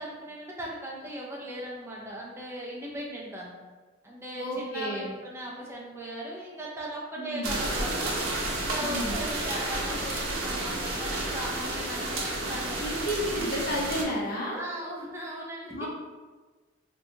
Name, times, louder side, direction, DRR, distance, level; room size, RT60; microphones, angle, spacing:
voice 1, 0.0-3.5 4.0-8.1 8.6-12.8 14.5-15.7, right 1 dB, 15° right, -3 dB, 0.4 m, -38 dB
voice 2, 4.4-5.1 7.2-7.6 8.8-9.2 12.8-14.6 15.7-15.9, equal, 45° left, -3 dB, 0.6 m, -31 dB
sound 1, 7.4-14.0, right 2 dB, 90° right, 0.6 m, -31 dB
2.7 x 2.2 x 2.6 m, 1.3 s
head